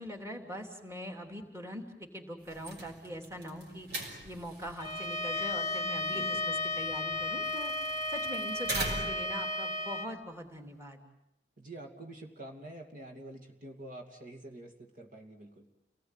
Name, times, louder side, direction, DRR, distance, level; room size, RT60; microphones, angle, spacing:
voice 1, 0.0-3.9 4.2-11.0, equal, 15° right, 4 dB, 3.2 m, -42 dB
sound 1, 2.4-9.4, right 2 dB, 65° right, 6.1 m, -42 dB
Bowed string instrument, 4.8-10.1, left 2 dB, 20° left, 1.5 m, -34 dB
voice 2, 6.1-6.4 11.6-15.7, right 1 dB, 50° right, 2 dB, 2.6 m, -47 dB
30.0 x 19.5 x 9.3 m, 0.85 s
head